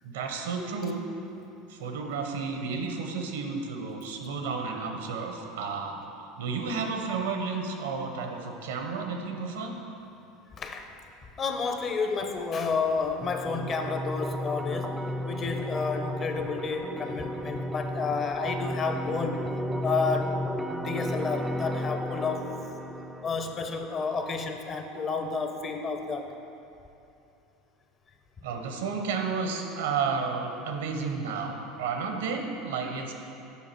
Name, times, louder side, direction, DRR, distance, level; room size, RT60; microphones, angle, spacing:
voice 1, 0.0-1.0 1.7-6.0 6.4-9.7 28.4-33.1, right 5 dB, 85° right, 3 dB, 0.7 m, -32 dB
voice 2, 10.6-10.9 11.4-19.5 19.8-20.4 20.8-22.5 23.2-26.3, left 4 dB, 35° left, 5 dB, 0.6 m, -30 dB
sound 1, 13.2-24.2, equal, 10° right, 0.3 m, -34 dB
7.0 x 4.9 x 4.4 m, 2.8 s
hypercardioid pair, 95°, 0 cm